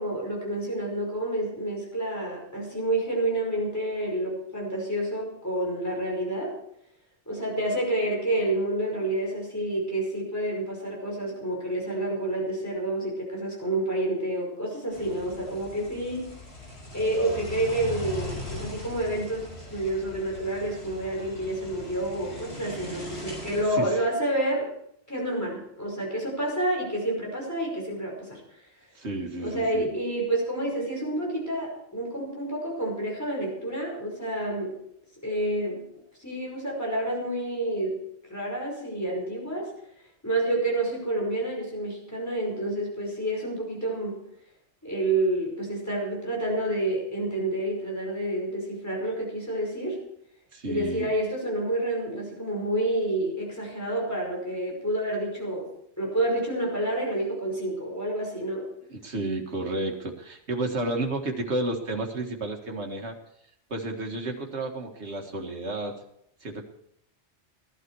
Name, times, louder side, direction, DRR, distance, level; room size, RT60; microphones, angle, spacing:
voice 1, 0.0-6.6 7.3-16.4 16.9-24.7 25.1-28.6 29.4-34.8 35.2-35.9 36.2-38.0 38.3-39.7 40.2-44.2 44.8-50.0 50.6-55.7 56.0-58.7 60.7-61.0, right 1 dB, 15° left, -2 dB, 5.4 m, -29 dB
sound 1, 14.9-23.6, left 1 dB, 70° left, 6.4 m, -40 dB
voice 2, 29.0-29.9 50.5-51.1 58.9-63.1 63.7-65.9 66.4-66.6, right 2 dB, 80° right, 2 dB, 2.1 m, -31 dB
17.5 x 12.0 x 4.7 m, 0.73 s
omnidirectional pair, 1.1 m